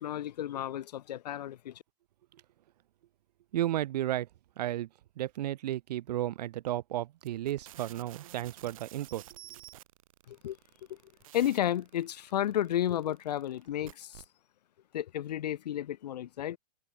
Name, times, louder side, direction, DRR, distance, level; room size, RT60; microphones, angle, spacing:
voice 1, 0.0-1.8 10.3-10.6 10.9-11.0 11.3-14.2 14.9-16.6, left 11 dB, 85° left, 0.6 m, -32 dB
voice 2, 3.5-4.3 4.6-4.9 5.2-9.2, right 13 dB, 80° right, 0.4 m, -33 dB
sound 1, 7.2-14.3, right 13 dB, 55° right, 5.4 m, -51 dB
hypercardioid pair, 160°, 21 cm